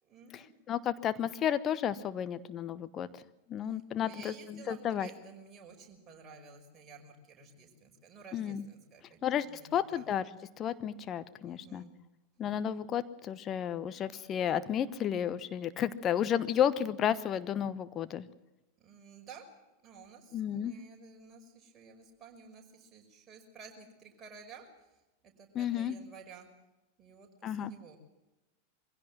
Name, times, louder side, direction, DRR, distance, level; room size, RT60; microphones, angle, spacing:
voice 1, 0.0-0.5 3.7-10.1 11.4-11.9 18.8-19.5 19.8-24.9 25.2-26.5 27.0-28.0, right 5 dB, 25° right, 1 dB, 5.7 m, -53 dB
voice 2, 0.7-3.1 3.5-5.1 8.3-8.6 9.2-10.2 10.6-11.8 12.4-18.3 20.3-20.7 25.5-25.9 27.4-27.7, left 9 dB, 30° left, 13 dB, 1.1 m, -32 dB
23.0 x 16.5 x 7.6 m, 1.0 s
figure-of-eight pair, 90°, 0 cm